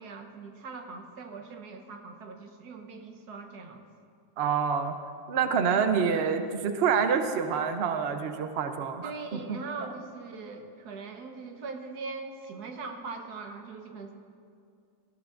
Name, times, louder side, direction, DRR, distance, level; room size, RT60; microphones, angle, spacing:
voice 1, 0.0-3.8 9.0-14.1, right 4 dB, 60° right, 4 dB, 1.4 m, -41 dB
voice 2, 4.4-4.9 5.3-9.6, right 6 dB, 80° right, 7 dB, 0.5 m, -27 dB
19.5 x 14.5 x 2.5 m, 2.4 s
omnidirectional pair, 2.1 m